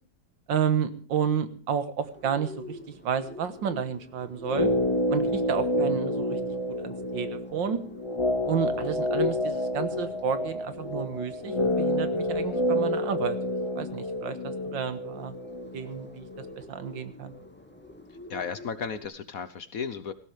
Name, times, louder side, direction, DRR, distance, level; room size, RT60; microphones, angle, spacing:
voice 1, 0.5-2.8 3.0-4.7 5.1-6.4 6.7-7.8 8.5-13.4 13.8-15.3 15.7-17.3, right 7 dB, 75° right, 11 dB, 1.9 m, -31 dB
Bird, 2.0-19.1, left 1 dB, 5° left, 1.4 m, -47 dB
sound 1, 4.4-16.6 16.8-16.9, left 1 dB, 25° left, 0.7 m, -29 dB
voice 2, 18.1-20.1, left 6 dB, 55° left, 13 dB, 1.1 m, -35 dB
18.0 x 16.0 x 3.3 m, 0.43 s
omnidirectional pair, 2.1 m